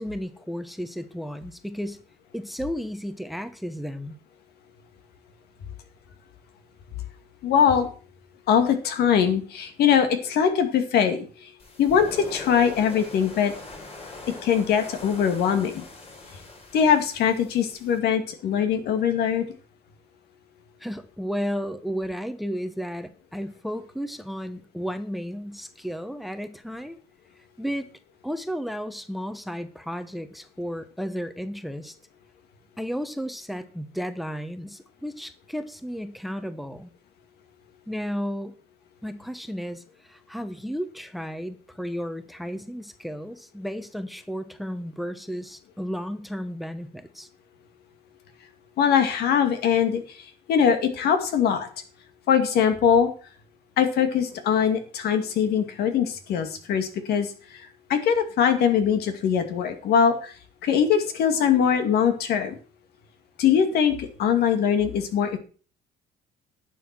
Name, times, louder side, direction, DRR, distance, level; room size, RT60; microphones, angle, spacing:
voice 1, 0.0-2.0 2.3-4.2 20.8-27.0 27.6-27.9 28.2-31.9 32.8-36.9 37.9-38.6 39.0-47.3, equal, ahead, 11 dB, 1.0 m, -33 dB
voice 2, 7.4-7.9 8.5-11.5 11.8-13.5 14.4-15.8 16.7-19.5 48.8-51.7 52.3-53.1 53.8-60.3 60.6-62.5 63.4-65.4, left 8 dB, 70° left, 8 dB, 2.1 m, -22 dB
sound 1, 11.6-18.0, left 2 dB, 35° left, 3.6 m, -42 dB
11.0 x 7.0 x 6.0 m, 0.39 s
cardioid pair, 110°, 17 cm